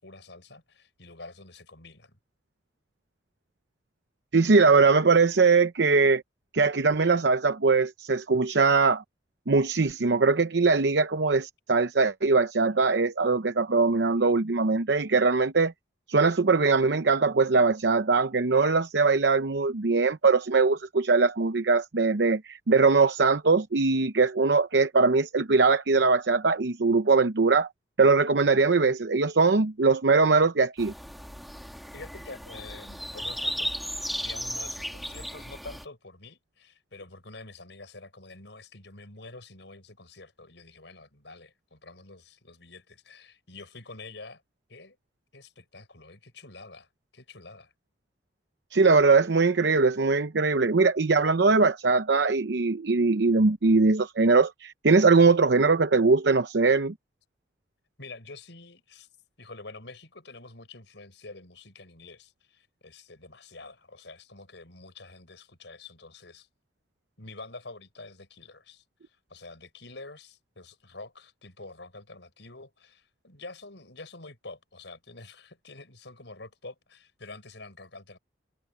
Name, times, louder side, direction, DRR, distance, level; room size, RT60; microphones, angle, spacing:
voice 1, 0.0-2.2 31.9-44.4 44.7-45.0 45.3-47.7 58.0-59.1 59.4-66.5 67.2-78.2, left 3 dB, 90° left, 6.3 m, -47 dB
voice 2, 4.3-6.2 6.5-9.0 9.5-15.7 16.1-27.7 28.0-30.9 48.7-56.9, right 4 dB, 80° right, 0.8 m, -21 dB
sound 1, 30.8-35.8, equal, ahead, 2.4 m, -35 dB
head